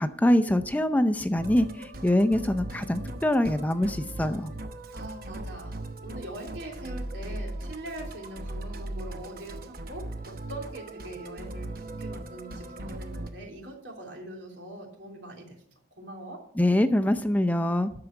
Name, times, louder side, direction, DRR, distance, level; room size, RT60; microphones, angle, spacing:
voice 1, 0.0-4.5 16.6-17.9, left 1 dB, 10° left, 9 dB, 0.5 m, -24 dB
Musical instrument, 1.3-13.3, right 1 dB, 55° right, 1.0 m, -38 dB
voice 2, 4.9-15.6 16.0-16.4, right 1 dB, 90° right, 0 dB, 3.2 m, -42 dB
13.0 x 4.9 x 8.9 m, 0.68 s
head